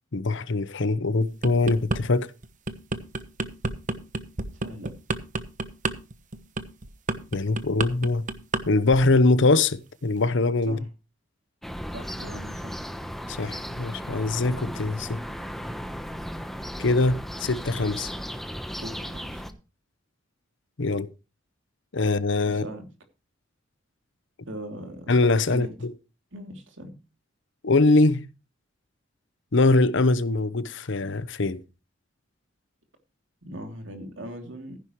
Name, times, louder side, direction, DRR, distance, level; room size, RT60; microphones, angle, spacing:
voice 1, 0.1-2.3 7.3-8.2 8.7-10.8 13.3-15.2 16.8-18.1 20.8-21.1 21.9-22.6 25.1-25.9 27.6-28.2 29.5-31.6, left 3 dB, 65° left, 0.8 m, -22 dB
sound 1, 1.2-2.0 2.4-8.6 8.9-9.2, right 3 dB, 40° right, 1.0 m, -29 dB
sound 2, 11.6-19.5, equal, ahead, 1.0 m, -36 dB
voice 2, 11.9-12.8 18.7-19.4 22.5-22.9 24.5-25.1 25.4-25.7 26.3-27.0 33.4-34.8, right 1 dB, 70° right, 2.9 m, -39 dB
14.5 x 10.5 x 3.1 m
head